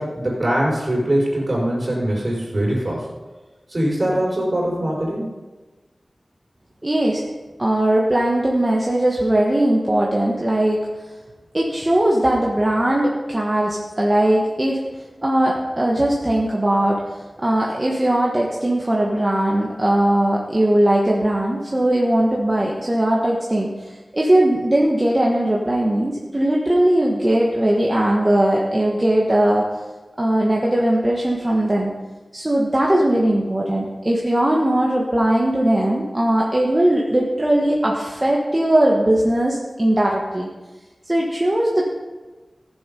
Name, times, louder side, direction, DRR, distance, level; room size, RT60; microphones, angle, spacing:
voice 1, 0.0-3.1 3.7-5.3, right 1 dB, 45° right, -4 dB, 4.8 m, -22 dB
voice 2, 6.8-7.2 7.6-10.8 11.5-14.8 15.2-17.0 17.4-29.6 30.2-31.9 32.3-40.5 41.1-41.8, right 1 dB, 25° right, -3 dB, 1.5 m, -19 dB
14.5 x 7.5 x 5.4 m, 1.2 s
wide cardioid pair, 70°, 0 cm